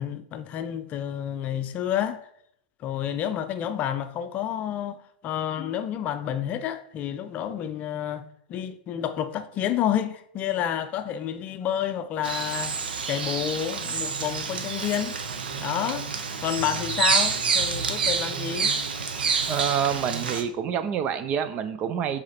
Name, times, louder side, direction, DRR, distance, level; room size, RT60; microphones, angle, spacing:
voice 1, 0.0-2.3 2.8-12.8 13.1-15.2 15.6-16.1 16.4-18.7, left 10 dB, 30° left, 0.6 m, -29 dB
Bird vocalization bird call bird song, 12.2-20.4, right 5 dB, 85° right, 1.1 m, -28 dB
voice 2, 19.5-22.2, right 8 dB, 30° right, 0.5 m, -27 dB
7.6 x 4.2 x 4.3 m
hypercardioid pair, 125°, 5 cm